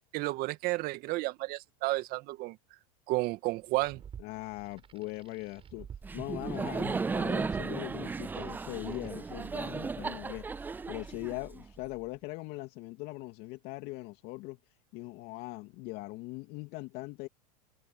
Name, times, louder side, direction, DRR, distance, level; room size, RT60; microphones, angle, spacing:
voice 1, 0.1-2.6 3.1-4.0, right 20 dB, 50° right, 2.1 m, -32 dB
sound 1, 3.6-9.1, right 8 dB, 30° right, 5.6 m, -51 dB
voice 2, 4.2-5.9 6.1-14.6 14.9-17.3, left 22 dB, 55° left, 2.5 m, -41 dB
Laughter, 6.0-11.9, right 4 dB, 10° right, 0.3 m, -35 dB
hypercardioid pair, 110°, 20 cm